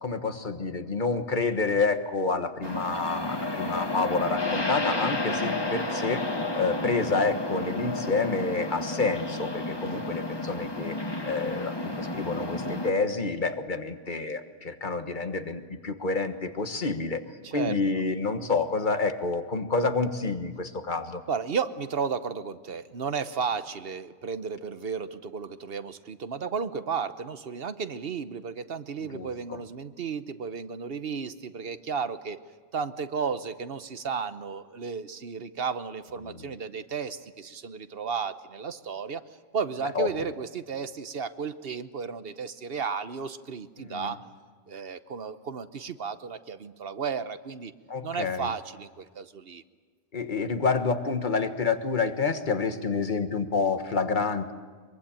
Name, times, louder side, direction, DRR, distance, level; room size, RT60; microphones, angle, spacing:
voice 1, 0.0-6.3 6.5-11.0 11.3-17.2 17.5-21.2 29.0-29.6 36.2-36.5 39.9-40.1 43.8-44.1 47.9-48.5 50.1-54.5, left 4 dB, 45° left, 8 dB, 1.5 m, -28 dB
sound 1, 2.6-12.9, left 2 dB, 25° left, 1.5 m, -31 dB
voice 2, 12.3-12.8 17.5-17.8 21.3-32.4 32.7-39.2 39.5-44.3 44.7-47.7 48.0-49.6 50.3-50.4, right 6 dB, 65° right, 12 dB, 1.1 m, -33 dB
23.5 x 23.0 x 8.9 m, 1.5 s
omnidirectional pair, 1.1 m